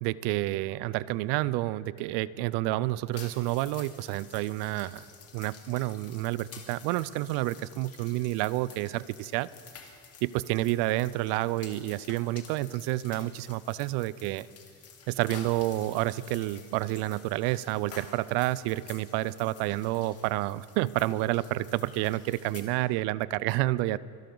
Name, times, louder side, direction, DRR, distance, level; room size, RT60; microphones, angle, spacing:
voice 1, 0.0-5.0 5.3-9.5 10.2-14.5 15.1-24.0, right 17 dB, 65° right, 20 dB, 0.5 m, -29 dB
sound 1, 3.1-22.6, left 6 dB, 35° left, 1.7 m, -51 dB
25.5 x 11.5 x 3.9 m, 2.6 s
cardioid pair, 145°, 43 cm